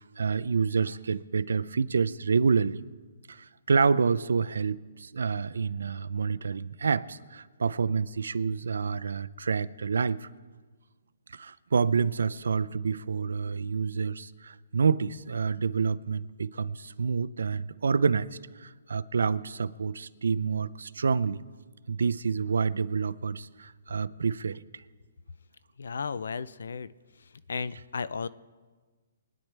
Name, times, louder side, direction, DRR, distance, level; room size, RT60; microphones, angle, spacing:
voice 1, 0.2-2.8 3.3-10.3 11.3-18.3 18.6-21.4 21.9-24.6, right 5 dB, 85° right, 0.5 m, -28 dB
voice 2, 25.8-26.9 27.5-28.3, left 5 dB, 80° left, 0.5 m, -34 dB
22.0 x 10.5 x 3.4 m
hypercardioid pair, 160°, 0 cm